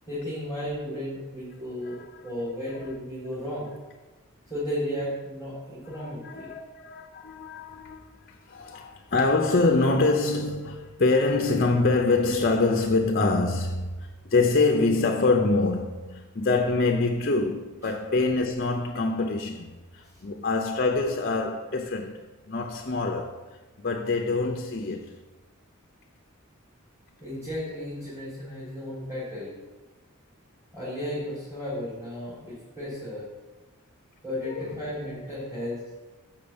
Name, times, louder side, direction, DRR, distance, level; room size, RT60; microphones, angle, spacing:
voice 1, 0.1-3.7 4.5-6.5 27.2-29.5 30.7-33.2 34.2-35.8, equal, 15° right, 3.6 m, -34 dB
voice 2, 5.9-25.1 34.4-34.9, left 3 dB, 45° left, 0.7 m, -25 dB
7.5 x 6.5 x 7.2 m
head